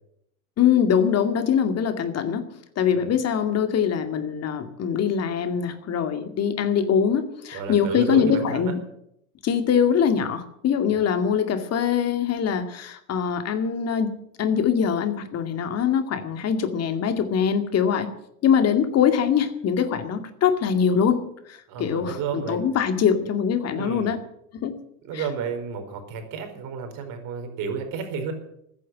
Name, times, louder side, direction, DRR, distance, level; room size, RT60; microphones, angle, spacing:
voice 1, 0.6-2.5 2.8-8.8 9.4-14.1 14.4-18.1 18.4-24.2 24.6-24.7 25.1-25.2, left 7 dB, 35° left, 8 dB, 2.3 m, -23 dB
voice 2, 7.5-8.7 10.9-11.0 21.7-22.6 23.7-24.1 25.0-28.3, right 6 dB, 45° right, 6 dB, 4.6 m, -31 dB
14.5 x 9.9 x 9.2 m, 0.75 s
hypercardioid pair, 95°, 44 cm